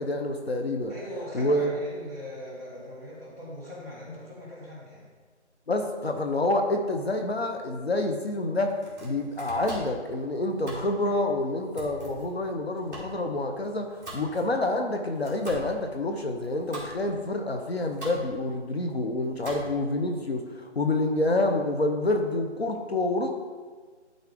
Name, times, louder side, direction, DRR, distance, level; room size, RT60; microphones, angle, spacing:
voice 1, 0.0-0.9 1.3-1.7 5.7-23.3, left 2 dB, 60° left, 4 dB, 0.7 m, -28 dB
voice 2, 0.9-5.1, left 1 dB, 15° left, -11 dB, 1.0 m, -40 dB
Domestic sounds home sounds, 8.6-20.0, right 1 dB, 15° right, 1.8 m, -44 dB
12.0 x 4.0 x 3.3 m, 1.5 s
figure-of-eight pair, 175°, 35 cm